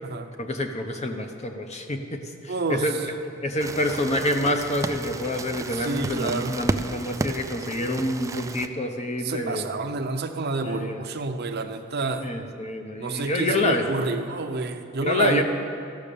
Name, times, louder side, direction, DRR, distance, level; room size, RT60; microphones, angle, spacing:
voice 1, 0.4-3.1 3.4-9.7 10.6-11.0 12.2-13.9 15.0-15.4, left 1 dB, 35° left, 4 dB, 0.8 m, -27 dB
voice 2, 2.5-2.8 5.7-6.6 9.2-12.3 13.0-15.4, right 3 dB, 50° right, 7 dB, 0.7 m, -28 dB
sound 1, 3.6-8.7, right 2 dB, 15° right, 0.3 m, -32 dB
13.5 x 6.2 x 6.9 m, 2.5 s
head